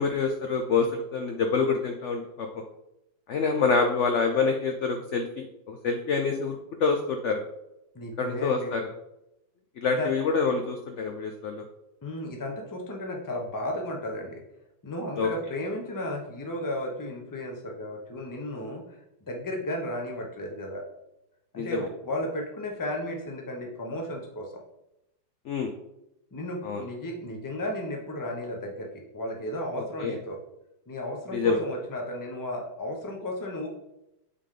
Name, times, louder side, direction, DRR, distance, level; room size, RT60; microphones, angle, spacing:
voice 1, 0.0-2.5 3.3-7.4 8.2-8.8 9.8-11.6 15.2-15.3 21.6-21.8 25.5-25.7 26.6-26.8 30.0-30.2 31.3-31.6, left 4 dB, 70° left, 4 dB, 0.7 m, -26 dB
voice 2, 7.9-8.8 9.9-10.1 12.0-14.4 14.8-19.0 19.3-20.8 21.5-24.6 26.3-30.4 30.9-33.7, left 1 dB, 20° left, 2 dB, 0.6 m, -34 dB
8.3 x 3.6 x 3.7 m, 0.87 s
omnidirectional pair, 1.9 m